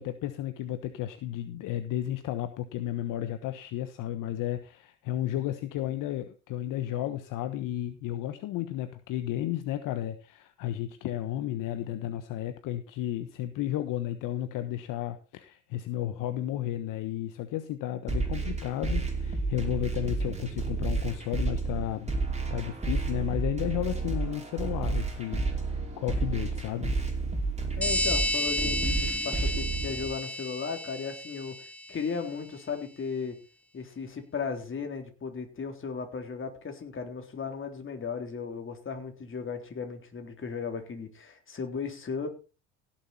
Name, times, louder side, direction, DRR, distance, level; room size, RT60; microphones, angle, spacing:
voice 1, 0.0-22.1 22.5-25.4 25.7-26.9, left 12 dB, 60° left, 10 dB, 1.3 m, -33 dB
sound 1, 18.1-30.1, right 3 dB, 20° right, 5.0 m, -31 dB
voice 2, 27.8-33.4 33.7-42.3, left 5 dB, 35° left, 4 dB, 3.8 m, -36 dB
sound 2, 27.8-32.1, left 1 dB, 5° left, 0.7 m, -31 dB
17.0 x 7.6 x 4.2 m, 0.32 s
hypercardioid pair, 70°, 36 cm